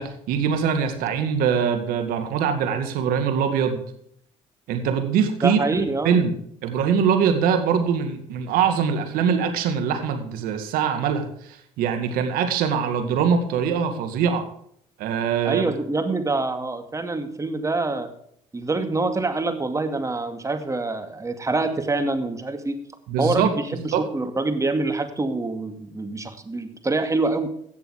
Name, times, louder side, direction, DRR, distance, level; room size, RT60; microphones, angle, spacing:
voice 1, 0.0-3.8 4.7-5.6 6.0-6.3 6.6-14.4 15.0-15.6 23.1-23.5 23.9-24.0, right 7 dB, 70° right, 7 dB, 2.1 m, -23 dB
voice 2, 5.4-6.2 15.4-18.1 18.5-22.8 23.2-27.5, right 3 dB, 20° right, 7 dB, 2.3 m, -25 dB
16.5 x 6.9 x 4.8 m, 0.67 s
supercardioid pair, 70°, 15 cm